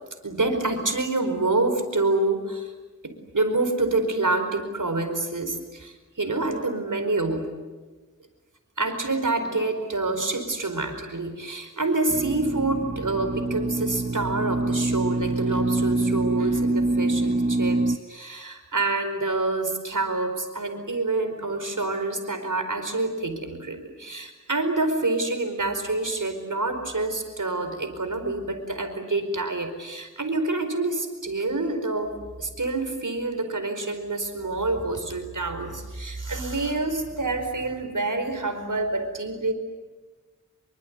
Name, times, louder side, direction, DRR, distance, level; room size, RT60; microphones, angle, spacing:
voice 1, 0.2-2.7 3.0-7.5 8.8-39.5, right 2 dB, 70° right, 7 dB, 4.8 m, -27 dB
sound 1, 12.1-18.0, right 2 dB, 25° right, 0.8 m, -25 dB
26.5 x 24.0 x 9.5 m, 1.3 s
wide cardioid pair, 65°, 32 cm